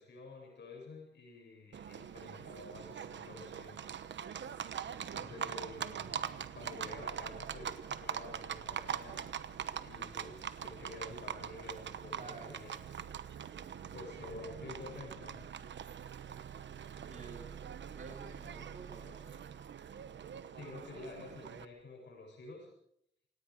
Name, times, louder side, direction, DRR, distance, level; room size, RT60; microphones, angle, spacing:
voice 1, 0.0-3.9 5.1-6.2 6.5-9.2 9.8-12.7 13.9-15.5 20.5-22.7, left 3 dB, 70° left, 0 dB, 7.6 m, -49 dB
Livestock farm animals working animals, 1.7-21.6, right 8 dB, 75° right, 1.1 m, -43 dB
voice 2, 5.1-5.6 12.1-12.7 17.0-17.5 17.9-19.3, right 3 dB, 40° right, 2 dB, 4.5 m, -51 dB
27.5 x 18.5 x 5.2 m, 0.71 s
wide cardioid pair, 180°, 19 cm